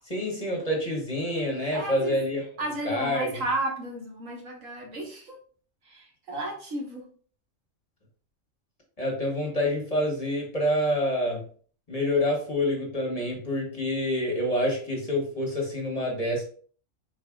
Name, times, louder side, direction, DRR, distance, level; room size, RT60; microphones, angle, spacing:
voice 1, 0.1-2.4 2.8-3.4 9.0-11.4 11.9-16.4, left 1 dB, 30° left, -1 dB, 1.2 m, -27 dB
voice 2, 1.7-2.2 2.6-5.4 5.8-7.1, right 2 dB, 80° right, -1 dB, 1.8 m, -33 dB
4.9 x 4.0 x 2.4 m, 0.44 s
omnidirectional pair, 1.3 m